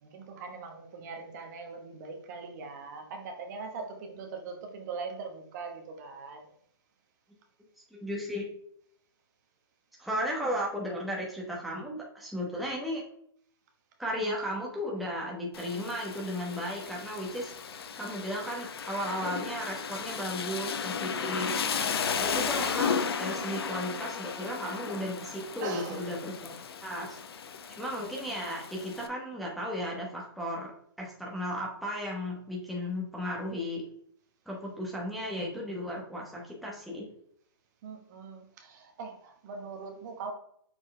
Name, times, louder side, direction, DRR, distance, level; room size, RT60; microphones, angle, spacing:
voice 1, 0.0-6.5 25.6-26.1 37.8-40.3, right 4 dB, 45° right, 3 dB, 1.3 m, -41 dB
voice 2, 7.9-8.4 10.0-13.0 14.0-21.5 22.2-27.2 27.8-30.7 31.0-33.8 34.5-37.0, equal, ahead, -3 dB, 1.1 m, -35 dB
Rain, 15.5-29.1, left 6 dB, 70° left, 0.8 m, -35 dB
6.5 x 4.6 x 3.3 m, 0.67 s
hypercardioid pair, 145°, 13 cm